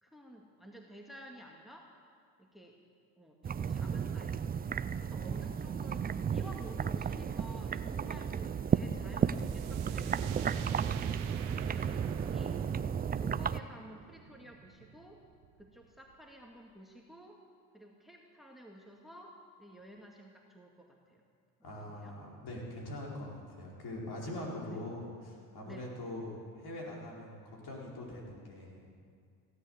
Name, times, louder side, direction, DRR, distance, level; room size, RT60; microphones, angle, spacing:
voice 1, 0.0-1.9 2.4-2.8 3.2-4.6 5.0-11.1 11.6-12.6 13.1-15.2 15.6-17.4 17.7-19.3 19.6-21.2 21.8-22.1 24.7-24.8 25.6-25.9, equal, ahead, 0 dB, 2.1 m, -52 dB
sound 1, 3.4-13.6, right 7 dB, 20° right, 0.4 m, -33 dB
sound 2, 9.2-16.8, right 10 dB, 75° right, 1.1 m, -52 dB
voice 2, 21.6-28.9, left 1 dB, 50° left, -3 dB, 5.0 m, -43 dB
16.5 x 10.0 x 8.2 m, 2.2 s
hypercardioid pair, 65°, 49 cm